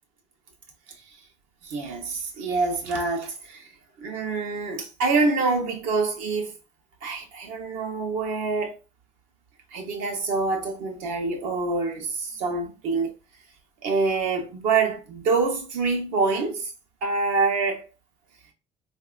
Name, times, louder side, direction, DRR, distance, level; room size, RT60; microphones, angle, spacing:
voice 1, 1.6-3.6 4.0-6.5 7.0-8.8 9.7-13.1 13.8-16.7 17.0-17.9, right 4 dB, 80° right, 1.0 m, -26 dB
3.4 x 2.6 x 2.4 m
cardioid pair, 140°, 14 cm